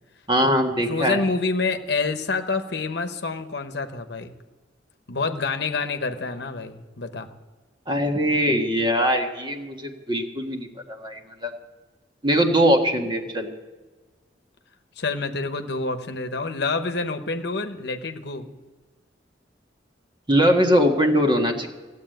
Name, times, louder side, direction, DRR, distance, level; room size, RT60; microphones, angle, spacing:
voice 1, 0.3-1.2 7.9-11.5 12.2-13.5 20.3-21.7, equal, 25° right, 2 dB, 1.6 m, -21 dB
voice 2, 0.9-4.3 5.1-7.3 15.0-18.5, left 3 dB, 70° left, 7 dB, 1.0 m, -27 dB
16.0 x 8.3 x 9.1 m, 1.3 s
head